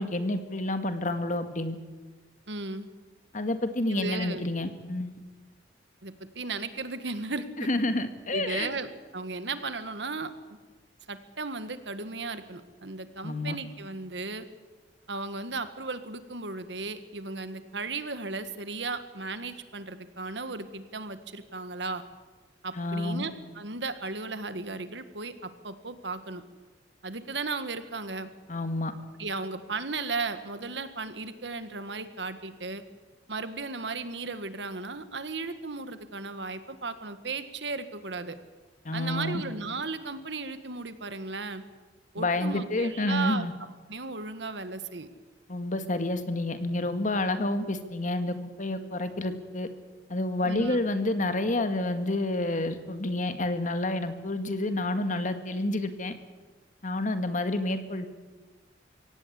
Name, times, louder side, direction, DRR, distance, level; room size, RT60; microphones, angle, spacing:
voice 1, 0.0-1.8 3.3-5.1 7.7-8.7 13.2-13.6 22.7-23.2 28.5-28.9 38.9-39.4 42.2-43.5 45.5-49.7 50.1-56.1 56.8-58.1, left 2 dB, 45° left, 9 dB, 1.8 m, -29 dB
voice 2, 2.5-2.9 3.9-4.4 6.0-7.5 8.3-10.3 11.1-14.4 15.1-22.0 22.6-26.4 27.0-28.3 29.2-32.8 33.3-38.4 38.9-41.6 42.1-43.5 43.9-45.1 50.4-50.8, right 3 dB, 75° right, 11 dB, 1.7 m, -35 dB
24.0 x 17.5 x 8.3 m, 1.3 s
head